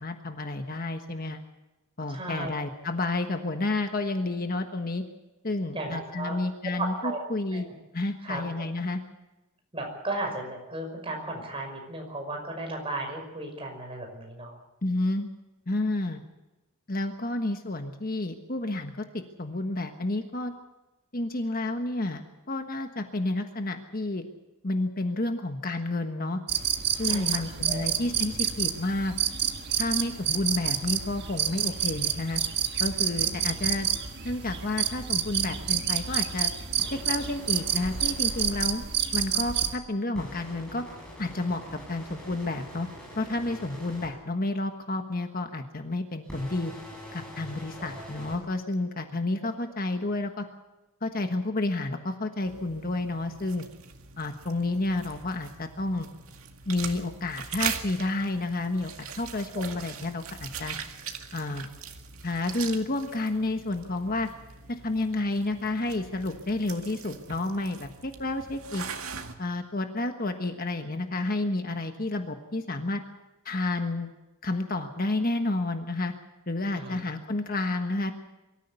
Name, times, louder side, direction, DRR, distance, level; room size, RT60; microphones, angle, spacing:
voice 1, 0.0-1.4 2.0-5.0 5.4-7.6 7.9-9.0 14.8-15.3 15.7-16.2 16.9-18.9 19.4-20.5 21.1-22.2 22.5-24.2 24.6-26.4 27.0-29.1 29.8-32.4 32.8-33.9 34.2-36.5 36.9-38.9 39.1-40.8 41.2-42.9 43.2-46.7 47.1-50.5 51.0-53.6 54.2-56.1 56.7-58.9 59.2-60.8 61.3-61.7 62.2-64.3 64.7-68.8 69.4-73.0 73.4-74.1 74.4-76.1 76.5-78.1, left 2 dB, 40° left, 6 dB, 1.3 m, -30 dB
voice 2, 2.1-2.5 5.7-6.4 6.8-7.2 7.5-7.7 8.2-8.7 9.7-14.6 27.0-27.4 27.7-27.9 33.2-33.3 47.8-48.1 59.5-59.6 76.7-77.0, right 2 dB, 25° right, 2 dB, 5.7 m, -35 dB
sound 1, 26.5-39.7, right 8 dB, 50° right, 1.5 m, -29 dB
sound 2, 36.8-38.4 40.1-44.1 46.2-48.4, equal, 5° left, 7.9 m, -44 dB
sound 3, 52.4-69.3, right 7 dB, 70° right, 2.0 m, -41 dB
23.5 x 14.0 x 8.3 m, 1.0 s
head